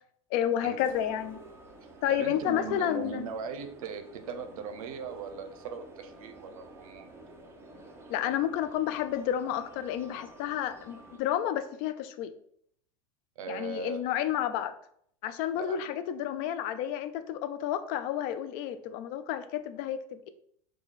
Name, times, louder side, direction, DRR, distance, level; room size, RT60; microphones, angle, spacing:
voice 1, 0.3-1.4 2.0-3.3 8.1-12.3 13.5-14.7 15.2-20.3, left 10 dB, 55° left, 11 dB, 0.4 m, -31 dB
sound 1, 0.8-11.2, right 2 dB, 15° right, 0.6 m, -51 dB
voice 2, 2.1-7.1 13.4-14.0 15.6-15.8, right 6 dB, 85° right, 7 dB, 0.6 m, -39 dB
3.1 x 2.3 x 4.0 m, 0.68 s
supercardioid pair, 115°, 18 cm